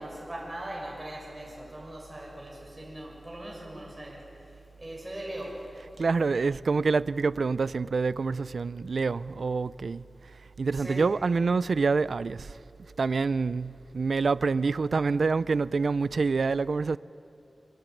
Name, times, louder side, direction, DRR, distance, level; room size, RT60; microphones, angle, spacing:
voice 1, 0.0-4.2 4.8-5.6 10.7-11.1, right 1 dB, 25° right, 6.4 m, -40 dB
voice 2, 6.0-10.0 10.6-12.4 13.0-17.0, right 4 dB, 80° right, 0.5 m, -26 dB
26.5 x 20.0 x 9.2 m
wide cardioid pair, 75°, 0 cm